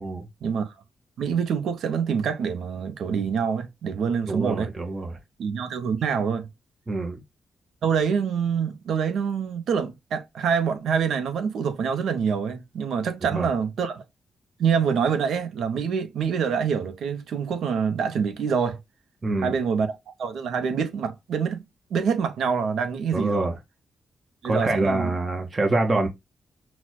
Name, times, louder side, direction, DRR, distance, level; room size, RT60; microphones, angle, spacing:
voice 1, 0.4-0.8 1.2-4.7 5.4-6.5 7.8-14.0 14.6-18.8 19.4-19.9 20.2-21.6 21.9-23.5 24.4-25.1, right 6 dB, 80° right, 0.5 m, -26 dB
voice 2, 4.3-5.2 6.9-7.2 13.3-13.5 19.2-19.5 23.1-23.5 24.4-26.1, right 2 dB, 25° right, 0.5 m, -25 dB
5.8 x 2.0 x 2.2 m
cardioid pair, 125°, 0 cm